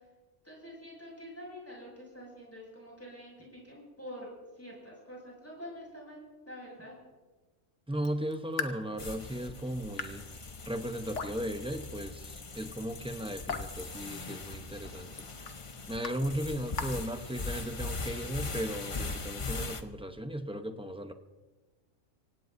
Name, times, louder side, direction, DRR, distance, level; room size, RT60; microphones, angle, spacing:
voice 1, 0.4-4.3 4.5-6.9, equal, 10° left, -4 dB, 6.8 m, -46 dB
Raindrop / Drip, 7.9-17.8, left 5 dB, 65° left, 1.4 m, -44 dB
voice 2, 7.9-10.3 10.7-15.1 15.9-21.1, equal, 5° right, 7 dB, 0.6 m, -36 dB
sound 1, 9.0-19.8, left 3 dB, 30° left, 0.7 m, -40 dB
25.5 x 17.5 x 2.7 m, 1.2 s
omnidirectional pair, 1.4 m